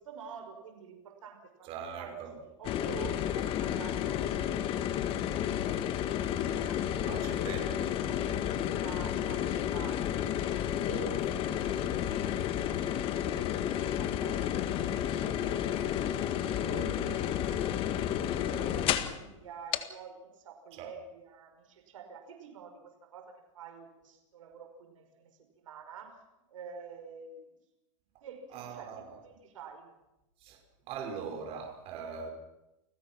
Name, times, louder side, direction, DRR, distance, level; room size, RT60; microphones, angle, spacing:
voice 1, 0.0-1.7 2.0-2.2 2.4-7.0 7.4-10.5 10.8-11.6 12.3-15.4 16.6-26.2 26.5-27.5 28.2-29.9, right 5 dB, 90° right, 5.5 m, -48 dB
voice 2, 1.6-2.4 7.0-7.8 11.6-11.8 15.2-15.9 20.8-20.9 28.5-29.1 30.4-30.6 30.9-32.3, right 6 dB, 35° right, 5.7 m, -41 dB
sound 1, 2.6-19.2 19.7-19.8, left 10 dB, 35° left, 1.7 m, -31 dB
29.5 x 19.5 x 6.1 m
supercardioid pair, 145°, 16 cm